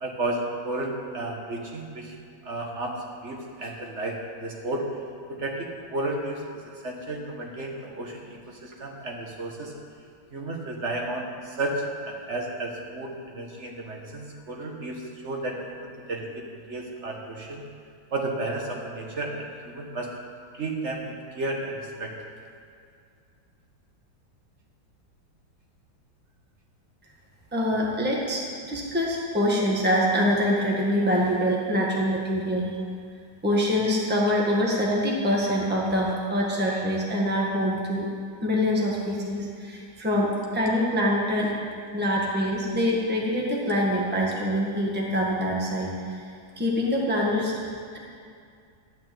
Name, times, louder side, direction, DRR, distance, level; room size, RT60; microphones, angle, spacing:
voice 1, 0.0-2.1 2.4-4.8 5.3-9.7 10.3-17.6 18.1-20.1 20.5-22.2, right 2 dB, 40° right, 0 dB, 1.6 m, -33 dB
voice 2, 27.5-32.7 33.4-38.1 38.4-41.5 41.9-46.2 46.6-47.5, equal, 5° right, -3 dB, 1.5 m, -25 dB
12.5 x 6.0 x 9.2 m, 2.3 s
omnidirectional pair, 2.1 m